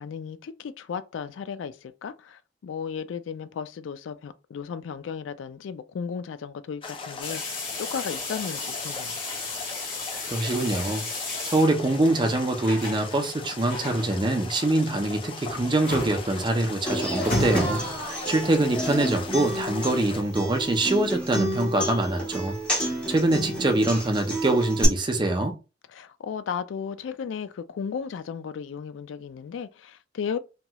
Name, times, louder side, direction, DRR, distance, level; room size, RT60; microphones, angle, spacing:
voice 1, 0.0-9.2 18.4-18.7 25.9-30.4, left 6 dB, 85° left, 0.3 m, -35 dB
sound 1, 6.8-20.2, left 4 dB, 30° left, 0.4 m, -40 dB
sound 2, 7.2-18.4, left 2 dB, 50° left, 1.5 m, -34 dB
voice 2, 10.3-11.1 11.4-17.8 18.3-22.6 23.1-25.6, right 2 dB, 25° right, 0.5 m, -24 dB
Human voice / Acoustic guitar, 16.9-24.8, right 1 dB, 5° left, 1.1 m, -31 dB
2.9 x 2.9 x 2.3 m
head